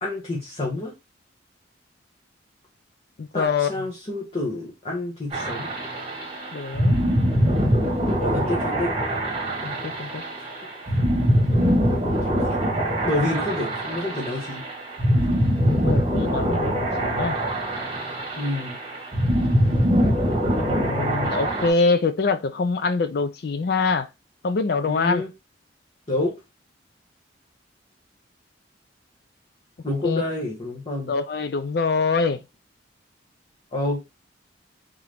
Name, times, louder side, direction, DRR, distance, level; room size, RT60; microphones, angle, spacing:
voice 1, 0.0-0.9 3.3-5.7 8.2-8.9 13.0-14.6 18.4-18.8 24.8-25.3 26.1-26.3 29.8-31.1 33.7-34.0, left 2 dB, 30° left, 1.1 m, -28 dB
voice 2, 3.2-3.7 6.5-7.0 9.6-10.2 15.8-17.4 20.6-24.1 24.4-25.2 30.0-30.2 31.1-32.4, left 4 dB, 55° left, 0.4 m, -24 dB
sound 1, 5.3-21.7, equal, 30° right, 1.1 m, -23 dB
3.7 x 2.9 x 3.3 m
head